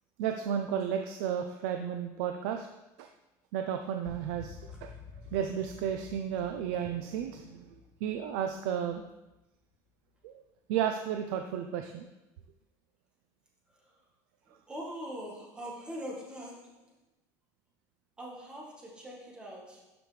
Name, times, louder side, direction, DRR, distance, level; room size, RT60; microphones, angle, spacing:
voice 1, 0.2-2.7 3.0-3.1 3.5-4.6 4.8-4.9 5.3-9.1 10.2-10.4 10.7-12.1, right 9 dB, 85° right, 5 dB, 0.6 m, -33 dB
sound 1, 4.0-9.4, left 5 dB, 80° left, 3.0 m, -51 dB
voice 2, 14.7-16.9 18.2-19.9, equal, 10° right, -2 dB, 1.4 m, -42 dB
12.0 x 5.2 x 3.3 m, 0.99 s
cardioid pair, 180°, 9 cm